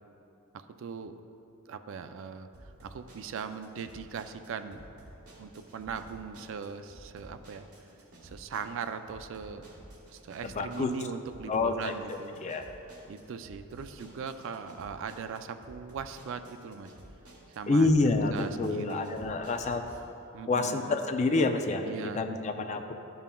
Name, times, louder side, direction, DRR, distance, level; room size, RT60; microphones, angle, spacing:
voice 1, 0.5-1.2 1.7-2.5 2.8-4.8 5.4-7.7 8.2-9.7 10.1-12.5 13.1-16.9 17.5-19.1 20.3-21.0 21.8-22.3, right 6 dB, 60° right, 9 dB, 0.3 m, -40 dB
sound 1, 2.5-20.0, right 1 dB, 85° right, 1.4 m, -52 dB
voice 2, 10.4-10.9 11.5-12.7 17.7-19.8 20.5-21.9 22.1-22.9, left 3 dB, 30° left, 5 dB, 0.3 m, -28 dB
11.5 x 5.5 x 2.2 m, 2.9 s
head